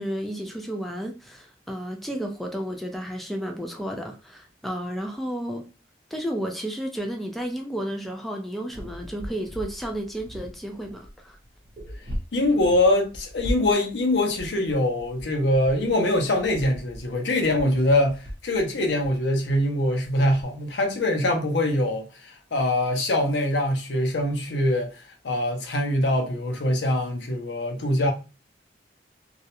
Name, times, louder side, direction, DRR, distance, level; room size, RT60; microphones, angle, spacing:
voice 1, 0.0-5.7 6.1-11.4, equal, ahead, 0.3 m, -32 dB
sound 1, 8.7-20.4, equal, 45° right, 0.7 m, -38 dB
voice 2, 12.3-28.1, left 1 dB, 80° left, 0.6 m, -23 dB
2.3 x 2.0 x 2.8 m
head